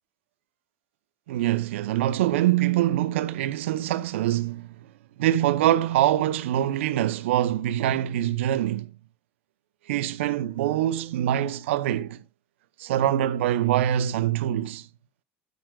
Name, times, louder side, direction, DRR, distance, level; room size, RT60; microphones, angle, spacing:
voice 1, 1.3-4.7 5.2-8.9 9.9-12.2 12.8-14.9, right 12 dB, 85° right, 0.6 m, -24 dB
9.5 x 8.9 x 2.3 m
hypercardioid pair, 80°, 6 cm